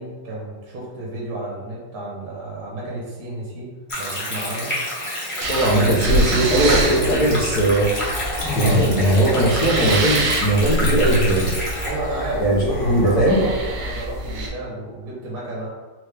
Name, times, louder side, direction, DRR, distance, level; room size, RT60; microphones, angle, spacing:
voice 1, 0.0-3.7 4.0-4.8 11.8-15.7, right 2 dB, 55° right, -5 dB, 1.0 m, -31 dB
Stream, 3.9-11.9, left 1 dB, 40° left, 0.4 m, -28 dB
sound 1, 5.4-14.5, right 2 dB, 85° right, 1.6 m, -27 dB
voice 2, 5.5-7.9 8.5-11.5 12.4-13.4, right 1 dB, 60° left, -7 dB, 1.1 m, -19 dB
sound 2, 6.5-14.5, equal, 75° left, 1.6 m, -29 dB
4.4 x 2.1 x 3.3 m, 1.3 s
omnidirectional pair, 2.3 m